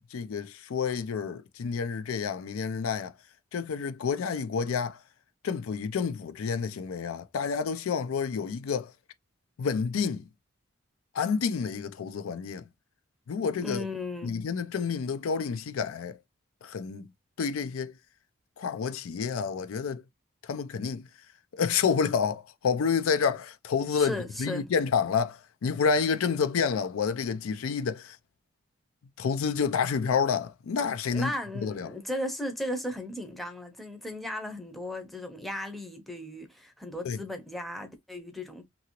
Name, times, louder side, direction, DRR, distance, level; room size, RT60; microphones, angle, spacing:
voice 1, 0.1-3.1 3.5-5.0 5.4-8.9 9.6-10.2 11.1-12.7 13.3-13.9 14.2-16.2 16.6-17.1 17.4-17.9 18.6-20.0 20.4-21.1 21.5-28.2 29.2-31.3 31.6-31.9 37.0-37.2, left 6 dB, 85° left, 0.4 m, -29 dB
voice 2, 13.6-14.3 23.9-24.7 31.1-38.7, left 1 dB, ahead, 0.5 m, -36 dB
2.9 x 2.6 x 2.9 m
head